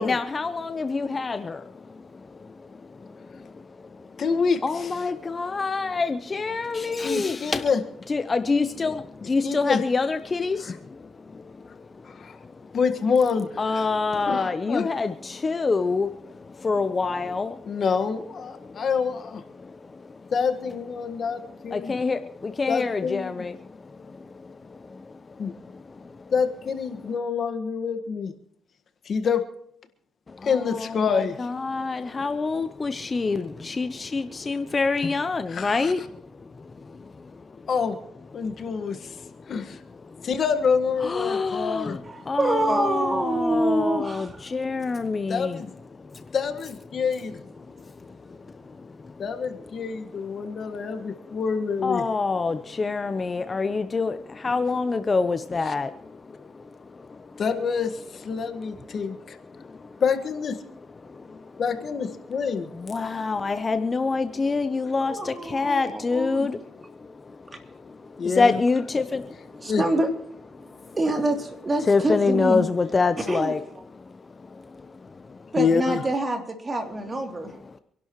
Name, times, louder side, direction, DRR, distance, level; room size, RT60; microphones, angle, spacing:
voice 1, 0.0-4.2 4.6-7.7 8.1-12.8 13.6-17.8 18.6-18.9 19.5-20.3 21.0-26.3 27.0-27.1 30.3-37.6 38.4-40.3 41.0-45.6 45.9-46.3 47.7-49.2 49.6-49.7 50.4-51.4 51.8-57.4 58.4-60.0 61.0-61.6 62.7-69.7 70.5-71.0 71.8-73.6 73.9-75.5 77.7-77.8, left 4 dB, 30° left, 10 dB, 0.8 m, -28 dB
voice 2, 4.2-4.9 7.0-7.8 9.4-9.8 10.7-10.8 12.1-12.4 12.7-13.8 14.3-14.9 17.7-19.4 20.3-21.9 22.7-23.4 25.4-25.5 26.3-28.3 29.0-29.4 30.4-31.4 35.5-35.9 37.7-38.0 38.3-39.1 39.5-39.8 40.2-42.0 45.3-45.7 46.3-47.3 49.2-52.0 57.4-59.4 60.0-60.6 61.6-62.7 68.2-68.5 69.7-69.8 75.6-76.0, left 6 dB, 55° left, 8 dB, 1.6 m, -26 dB
voice 3, 42.0-44.4 65.0-66.5 69.6-70.1 70.9-72.6 73.2-73.5 75.5-77.5, right 1 dB, 30° right, 4 dB, 3.1 m, -26 dB
26.5 x 11.5 x 3.1 m, 0.70 s
cardioid pair, 90°, 0 cm